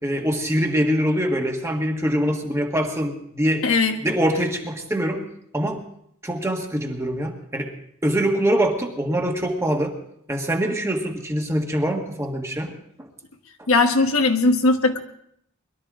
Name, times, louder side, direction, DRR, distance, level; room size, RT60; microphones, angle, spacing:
voice 1, 0.0-3.6 4.0-5.2 5.5-5.8 6.2-7.7 8.0-9.9 10.3-13.1, equal, 15° right, 1 dB, 1.6 m, -24 dB
voice 2, 3.6-4.0 13.7-15.0, left 3 dB, 75° left, 5 dB, 1.5 m, -18 dB
22.0 x 12.5 x 3.8 m, 0.70 s
head